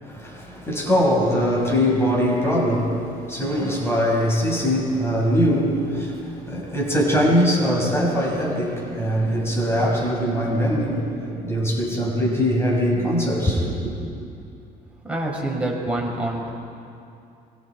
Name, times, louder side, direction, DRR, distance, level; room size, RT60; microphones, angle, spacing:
voice 1, 0.0-14.0, equal, 15° left, -2 dB, 5.8 m, -22 dB
voice 2, 15.1-16.5, right 1 dB, 5° right, -2 dB, 4.8 m, -26 dB
25.5 x 24.0 x 4.8 m, 2.6 s
cardioid pair, 110°, 17 cm